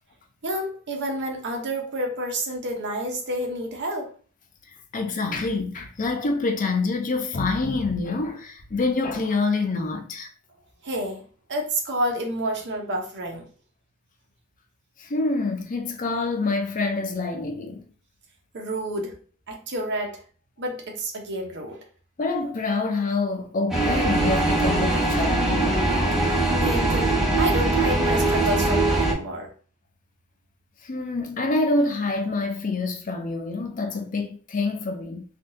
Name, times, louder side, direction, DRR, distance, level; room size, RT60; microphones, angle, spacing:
voice 1, 0.4-4.1 10.8-11.2 11.5-13.5 18.5-19.1 19.5-20.2 20.6-21.8 26.5-29.5, right 1 dB, 50° right, 0.8 m, -29 dB
voice 2, 4.9-10.3 15.0-17.8 22.2-25.9 30.8-35.2, left 3 dB, 35° left, 0.5 m, -26 dB
sound 1, 23.7-29.1, right 2 dB, ahead, 0.6 m, -21 dB
3.6 x 2.3 x 2.6 m
head